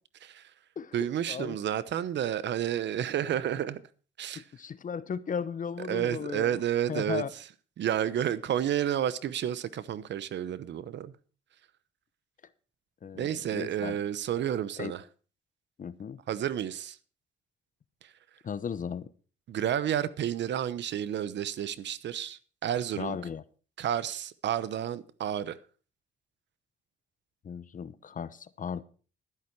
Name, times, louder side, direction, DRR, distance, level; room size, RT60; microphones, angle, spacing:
voice 1, 0.9-3.8 4.2-4.4 5.9-7.2 7.8-11.1 13.1-15.0 16.3-17.0 18.0-18.1 19.5-23.2 23.8-25.6, right 10 dB, 65° right, 0.9 m, -31 dB
voice 2, 4.3-6.6 6.9-7.3 13.0-14.0 14.8-14.9 15.8-16.2 18.4-19.1 22.9-23.4 27.4-28.8, left 7 dB, 40° left, 0.9 m, -36 dB
11.5 x 11.0 x 4.6 m
cardioid pair, 90°, 20 cm